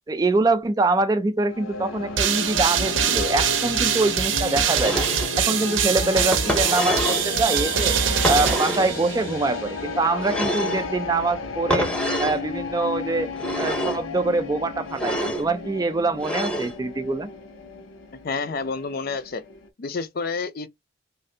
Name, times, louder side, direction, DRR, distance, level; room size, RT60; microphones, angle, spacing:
voice 1, 0.1-5.1 5.4-7.9 8.3-11.9 12.2-13.3 13.6-17.3, right 2 dB, 20° right, 0.3 m, -24 dB
sound 1, 1.5-19.7, left 3 dB, 85° left, 0.7 m, -33 dB
sound 2, 2.2-9.4, right 8 dB, 75° right, 0.7 m, -24 dB
sound 3, 4.7-5.3 6.3-7.3 8.2-9.0 10.2-10.9 11.7-12.4 13.3-14.0 14.9-15.5 16.2-16.7, equal, 5° left, 0.7 m, -27 dB
voice 2, 18.2-19.4 19.8-20.7, left 4 dB, 50° left, 0.4 m, -29 dB
3.2 x 2.5 x 2.6 m
head